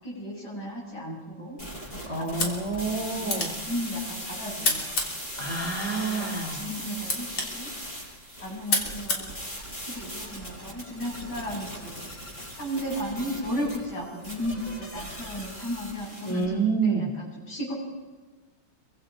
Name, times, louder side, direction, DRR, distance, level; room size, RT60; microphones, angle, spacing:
voice 1, 0.0-1.6 2.2-4.9 5.9-7.7 8.4-9.5 9.9-12.0 12.6-17.7, equal, 50° left, -3 dB, 8.3 m, -35 dB
sound 1, 1.6-16.4, equal, 20° left, 7.5 m, -39 dB
voice 2, 2.0-3.5 5.4-6.7 16.2-17.1, right 4 dB, 15° right, 2 dB, 2.3 m, -28 dB
sound 2, 2.2-10.2, left 3 dB, 80° left, 4.2 m, -33 dB
26.0 x 24.0 x 5.1 m, 1.3 s
omnidirectional pair, 2.3 m